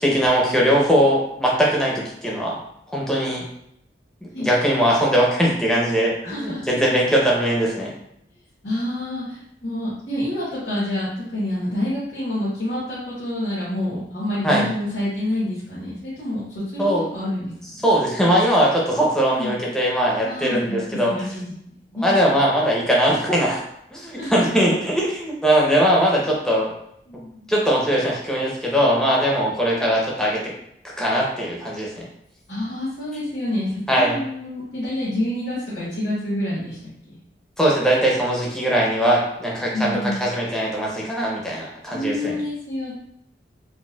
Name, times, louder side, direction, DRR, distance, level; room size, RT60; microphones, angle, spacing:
voice 1, 0.0-2.6 2.9-3.4 4.2-7.9 14.4-14.7 16.8-17.1 17.8-21.1 22.0-23.6 23.9-26.7 27.5-30.5 30.8-32.1 33.9-34.2 37.6-42.4, equal, 5° left, -4 dB, 0.5 m, -20 dB
voice 2, 6.2-6.7 8.6-17.8 19.3-19.5 20.2-20.8 21.0-22.1 24.1-24.4 27.1-27.5 32.5-37.2 39.7-40.2 41.9-42.9, left 1 dB, 70° left, -9 dB, 1.0 m, -28 dB
4.0 x 2.0 x 2.2 m, 0.75 s
head